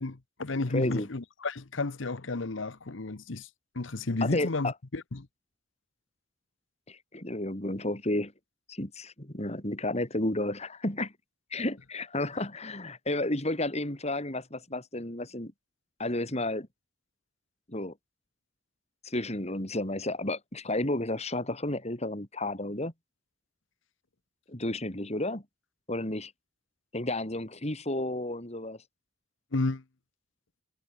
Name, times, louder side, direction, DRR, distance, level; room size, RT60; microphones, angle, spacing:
voice 1, 0.0-3.5 3.7-5.3 29.5-29.8, left 2 dB, 75° left, 1.1 m, -32 dB
voice 2, 0.7-1.1 4.2-4.7 6.9-8.3 8.7-11.1 11.5-15.5 16.0-16.7 17.7-17.9 19.0-22.9 24.5-25.4 25.9-26.3 26.9-28.8, left 1 dB, 35° left, 3.8 m, -32 dB
head